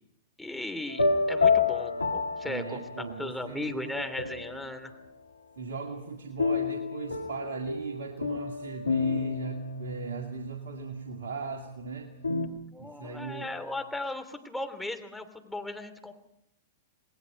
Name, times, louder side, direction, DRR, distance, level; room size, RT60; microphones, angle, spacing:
voice 1, 0.4-4.9 12.7-16.1, left 2 dB, 5° left, 6 dB, 3.0 m, -37 dB
sound 1, 0.9-3.3 3.9-4.8 6.4-12.5, left 4 dB, 90° left, 1.9 m, -30 dB
voice 2, 2.4-4.1 5.6-12.1 12.8-13.5, right 5 dB, 70° right, 3 dB, 2.3 m, -39 dB
28.5 x 20.0 x 5.3 m, 0.78 s
figure-of-eight pair, 105°, 0 cm